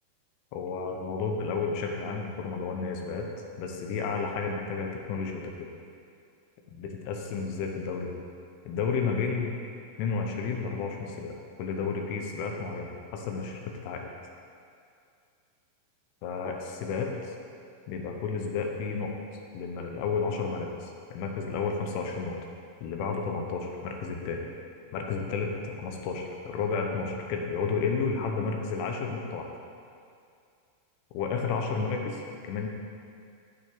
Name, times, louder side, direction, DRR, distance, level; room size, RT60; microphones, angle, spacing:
voice 1, 0.5-3.3 3.6-5.5 6.7-8.1 8.7-9.5 10.0-11.3 11.6-14.1 16.2-17.4 17.9-19.1 19.5-22.4 22.8-24.4 24.9-29.5 31.1-32.2 32.4-32.7, left 5 dB, 85° left, 2 dB, 3.2 m, -32 dB
15.5 x 5.2 x 3.5 m, 2.4 s
omnidirectional pair, 5.6 m